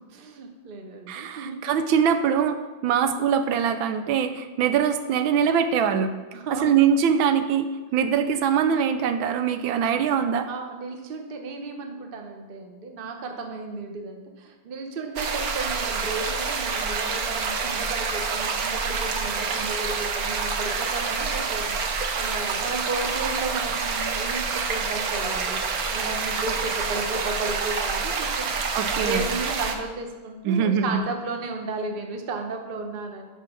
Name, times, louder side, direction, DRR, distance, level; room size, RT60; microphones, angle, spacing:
voice 1, 0.1-1.6 6.3-6.8 10.5-28.6 29.0-33.3, right 3 dB, 40° right, 4 dB, 0.9 m, -34 dB
voice 2, 1.1-6.1 6.6-10.5 28.7-29.2 30.4-31.0, right 7 dB, 85° right, 9 dB, 1.4 m, -23 dB
sound 1, 15.2-29.8, right 5 dB, 60° right, 1.1 m, -27 dB
8.3 x 5.9 x 6.1 m, 1.3 s
omnidirectional pair, 2.1 m